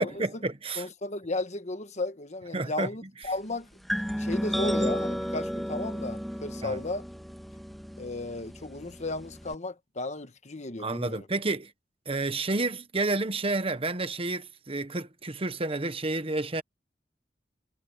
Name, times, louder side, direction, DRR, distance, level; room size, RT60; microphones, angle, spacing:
voice 1, 0.0-0.8 2.5-2.9 6.6-6.8 10.8-11.7 12.1-16.6, right 2 dB, 35° right, 1.2 m, -30 dB
voice 2, 0.8-7.0 8.0-11.2, left 2 dB, 40° left, 1.3 m, -35 dB
sound 1, 3.9-9.5, equal, ahead, 1.6 m, -33 dB
head